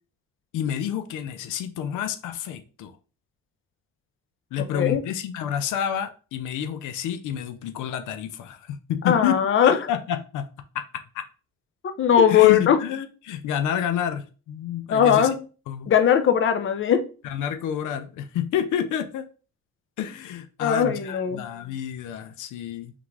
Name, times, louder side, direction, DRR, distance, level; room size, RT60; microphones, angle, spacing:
voice 1, 0.5-2.9 4.5-9.4 9.6-10.5 10.7-10.8 11.1-11.2 12.2-15.3 15.7-15.9 17.2-19.3 20.0-22.9, left 9 dB, 85° left, 0.6 m, -29 dB
voice 2, 9.0-9.8 11.8-12.8 14.9-15.4 15.9-17.0 20.6-21.4, left 9 dB, 40° left, 0.6 m, -19 dB
3.7 x 3.5 x 3.2 m
cardioid pair, 90°, 30 cm